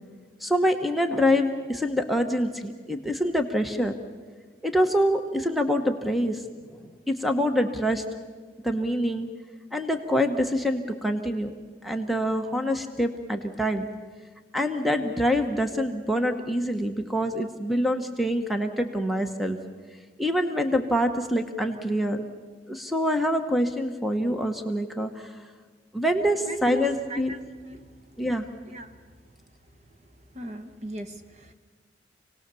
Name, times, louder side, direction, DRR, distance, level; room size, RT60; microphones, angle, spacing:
voice 1, 0.4-4.0 4.6-6.4 6.7-6.8 7.1-8.0 8.6-9.3 9.7-11.5 11.8-13.9 14.5-19.6 20.2-22.2 22.7-25.3 25.9-27.3 28.2-28.4, equal, ahead, 6 dB, 1.1 m, -25 dB
voice 2, 26.5-26.8 27.1-28.0 28.7-29.0 30.3-31.5, right 1 dB, 40° right, 7 dB, 1.2 m, -38 dB
27.5 x 18.5 x 7.0 m, 1.5 s
head